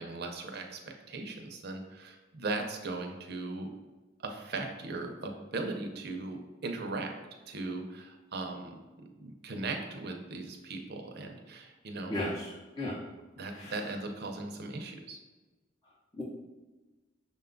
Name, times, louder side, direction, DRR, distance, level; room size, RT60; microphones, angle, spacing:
voice 1, 0.0-3.7 4.2-7.1 7.5-12.2 13.4-15.2, right 3 dB, 60° right, 4 dB, 0.6 m, -38 dB
voice 2, 12.1-13.0 13.5-13.8 16.1-16.2, left 1 dB, 20° left, -6 dB, 0.6 m, -35 dB
6.2 x 2.2 x 3.8 m, 1.2 s
head